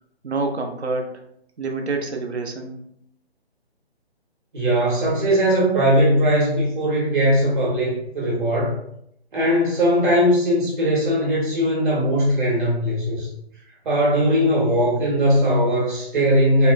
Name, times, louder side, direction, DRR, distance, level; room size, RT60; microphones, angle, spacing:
voice 1, 0.2-1.2 1.6-2.8, right 3 dB, 85° right, 4 dB, 0.6 m, -27 dB
voice 2, 4.5-8.7 9.3-13.3 13.8-16.7, equal, 50° right, -5 dB, 0.9 m, -19 dB
2.9 x 2.1 x 2.3 m, 0.74 s
figure-of-eight pair, 135°, 32 cm